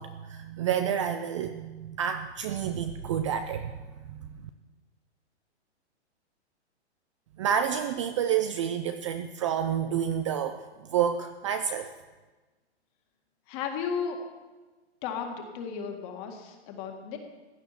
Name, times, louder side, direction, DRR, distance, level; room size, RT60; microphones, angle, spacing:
voice 1, 0.0-3.7 4.1-4.4 7.4-11.9, right 8 dB, 30° right, 8 dB, 0.4 m, -29 dB
voice 2, 13.5-14.3 15.0-17.2, left 6 dB, 30° left, 4 dB, 2.0 m, -34 dB
15.5 x 9.6 x 5.8 m, 1.2 s
hypercardioid pair, 145°, 34 cm